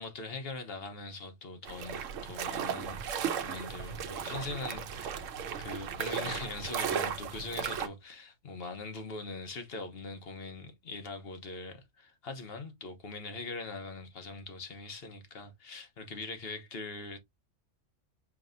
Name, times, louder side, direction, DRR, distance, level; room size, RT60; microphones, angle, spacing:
voice 1, 0.0-5.3 5.6-17.2, left 3 dB, 50° left, 1.2 m, -42 dB
sound 1, 1.6-7.9, right 7 dB, 80° right, 1.0 m, -36 dB
5.0 x 3.0 x 2.6 m
omnidirectional pair, 1.3 m